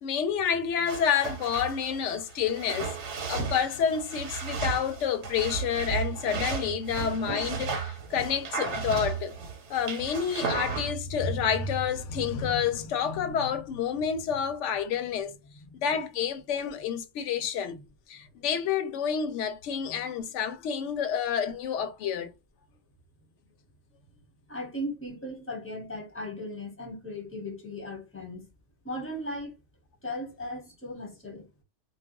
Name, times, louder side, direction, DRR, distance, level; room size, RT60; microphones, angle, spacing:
voice 1, 0.0-2.9 3.3-9.3 9.7-15.4 15.8-17.8 18.1-22.3, left 7 dB, 85° left, 0.9 m, -29 dB
sound 1, 0.9-10.9, right 5 dB, 75° right, 1.1 m, -34 dB
voice 2, 24.5-28.4 28.8-29.5 30.0-31.6, left 1 dB, 10° left, 0.9 m, -37 dB
2.3 x 2.2 x 2.9 m
omnidirectional pair, 1.2 m